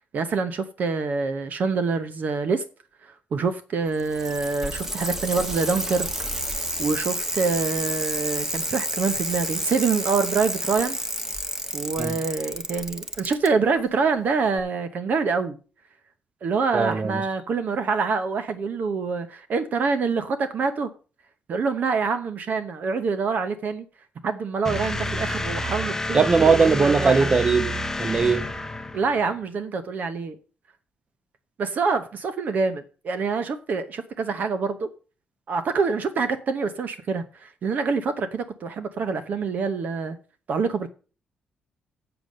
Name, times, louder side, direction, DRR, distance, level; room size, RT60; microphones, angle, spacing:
voice 1, 0.1-2.6 3.0-6.1 6.8-11.0 11.7-15.6 16.4-20.9 21.5-23.8 24.2-27.3 28.9-30.3 31.6-34.9 35.5-40.2 40.5-40.9, right 4 dB, 55° right, 0.9 m, -26 dB
Bicycle, 3.9-13.5 14.6-14.7, right 1 dB, 10° right, 1.1 m, -30 dB
voice 2, 16.7-17.2 26.1-28.4, right 4 dB, 35° right, 1.1 m, -20 dB
sound 1, 24.6-29.3, left 1 dB, 15° left, 0.7 m, -29 dB
7.8 x 6.9 x 6.5 m
cardioid pair, 105°, 3 cm